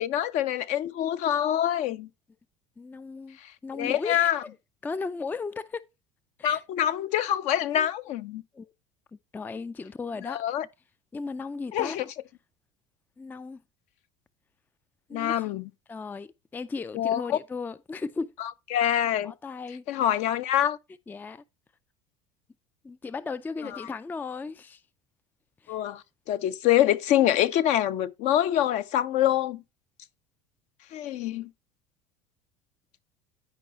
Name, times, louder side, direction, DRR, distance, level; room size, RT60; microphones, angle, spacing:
voice 1, 0.0-2.1 3.8-4.4 6.4-8.4 10.3-10.7 11.7-12.0 15.1-15.7 16.9-17.4 18.7-19.3 19.9-20.8 25.7-29.6 30.9-31.5, left 11 dB, 50° left, 0.6 m, -25 dB
voice 2, 2.8-4.6 4.8-5.9 6.4-6.6 7.7-7.9 8.5-8.7 9.1-10.4 11.1-12.0 13.2-13.6 15.1-15.5 15.9-18.3 19.2-19.8 21.1-21.4 22.8-24.8 25.6-25.8, left 4 dB, 10° left, 0.4 m, -36 dB
9.7 x 5.3 x 3.0 m
hypercardioid pair, 70°, 15 cm